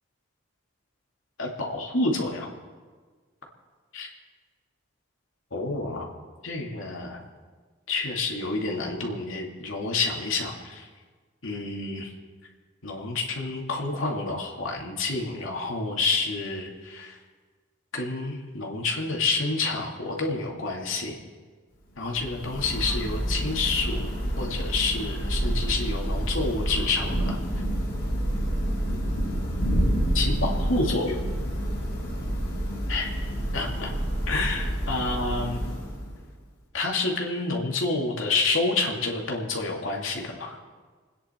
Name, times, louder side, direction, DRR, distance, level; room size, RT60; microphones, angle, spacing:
voice 1, 1.4-2.5 3.9-4.1 5.5-6.1 6.4-7.2 7.9-10.9 11.4-12.1 12.8-17.2 17.9-21.2 22.0-24.1 24.4-27.4 28.9-29.1 30.1-31.3 32.9-33.1 33.5-33.9 34.3-35.7 36.7-40.6, left 3 dB, 80° left, 0 dB, 2.6 m, -28 dB
Thunder / Rain, 22.0-36.4, equal, 50° left, 3.9 m, -28 dB
26.5 x 10.0 x 4.5 m, 1.5 s
head